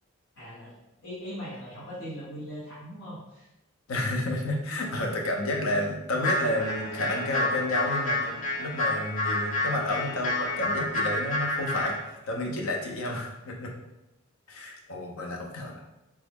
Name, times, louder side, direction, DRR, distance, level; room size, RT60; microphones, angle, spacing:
voice 1, 0.4-0.7 1.0-3.5, equal, 70° left, -9 dB, 1.1 m, -40 dB
voice 2, 3.9-12.0 12.2-13.7 14.5-15.8, left 1 dB, 90° left, 1 dB, 0.6 m, -30 dB
sound 1, 6.2-12.0, left 1 dB, 35° left, 0.5 m, -29 dB
3.3 x 2.0 x 3.5 m, 0.95 s
head